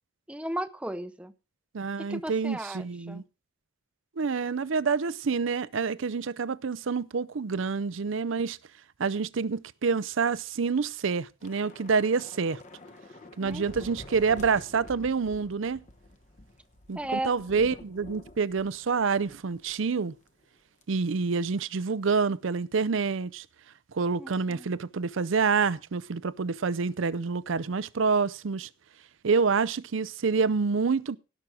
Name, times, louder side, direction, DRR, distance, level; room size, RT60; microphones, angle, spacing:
voice 1, 0.3-1.3 2.1-3.2 13.4-13.9 17.0-17.3 24.2-24.7, right 1 dB, 5° right, 0.6 m, -35 dB
voice 2, 1.7-3.2 4.2-8.6 9.0-12.6 13.4-15.8 16.9-20.1 20.9-23.5 23.9-28.7 29.2-31.2, right 5 dB, 75° right, 0.5 m, -27 dB
Thunder / Rain, 11.4-20.0 20.3-20.5 20.8-21.1, left 2 dB, 35° left, 1.0 m, -49 dB
17.5 x 6.2 x 4.9 m
head